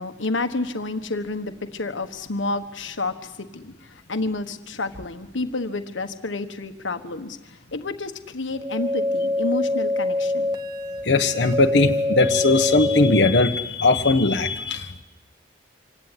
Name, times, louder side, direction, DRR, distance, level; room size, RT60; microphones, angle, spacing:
voice 1, 0.0-3.7 4.1-7.4 7.7-10.5, left 2 dB, 80° left, 8 dB, 1.4 m, -29 dB
sound 1, 8.6-13.5, left 2 dB, 20° right, 1.7 m, -25 dB
voice 2, 11.0-15.0, left 3 dB, 60° left, 3 dB, 1.3 m, -19 dB
26.0 x 17.5 x 9.8 m, 1.1 s
head